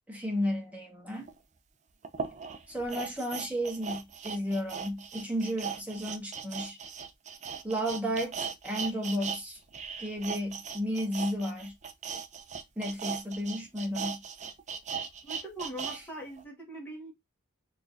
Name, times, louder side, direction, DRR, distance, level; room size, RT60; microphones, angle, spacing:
voice 1, 0.1-1.3 2.7-6.8 7.6-9.6 10.0-11.7 12.8-14.2, equal, 5° right, 1.5 m, -33 dB
sound 1, 1.3-1.4 2.0-9.4 9.7-16.0 16.4-16.5, right 6 dB, 35° right, 0.6 m, -38 dB
voice 2, 15.2-17.1, right 1 dB, 10° left, 1.7 m, -41 dB
4.4 x 3.2 x 2.7 m
head